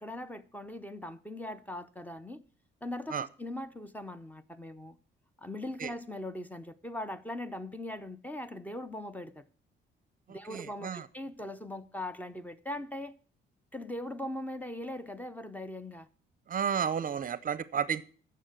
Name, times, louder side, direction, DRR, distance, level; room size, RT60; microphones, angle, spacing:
voice 1, 0.0-2.4 2.8-5.0 5.4-9.5 10.3-13.1 13.7-16.1, left 1 dB, 10° left, 0.7 m, -40 dB
voice 2, 10.5-11.0 16.5-18.1, right 7 dB, 45° right, 0.6 m, -32 dB
9.2 x 6.5 x 7.5 m
cardioid pair, 90°, 20 cm